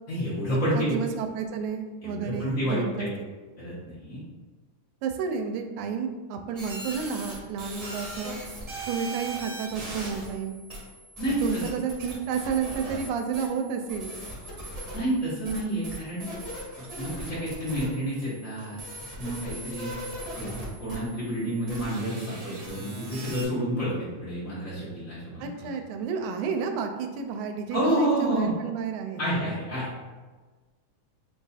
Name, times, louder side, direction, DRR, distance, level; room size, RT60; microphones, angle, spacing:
voice 1, 0.1-1.0 2.0-3.1 3.6-4.2 11.2-11.6 14.9-16.3 16.8-18.8 19.2-19.9 20.4-20.5 20.8-25.7 27.7-28.5 29.2-29.9, right 1 dB, 80° left, -10 dB, 0.7 m, -29 dB
voice 2, 0.8-3.3 5.0-8.4 8.9-10.6 11.4-14.1 25.4-29.4, right 6 dB, 90° right, 6 dB, 2.0 m, -31 dB
sound 1, 6.6-23.4, right 1 dB, 35° right, 0.5 m, -39 dB
5.2 x 2.4 x 4.0 m, 1.3 s
omnidirectional pair, 3.4 m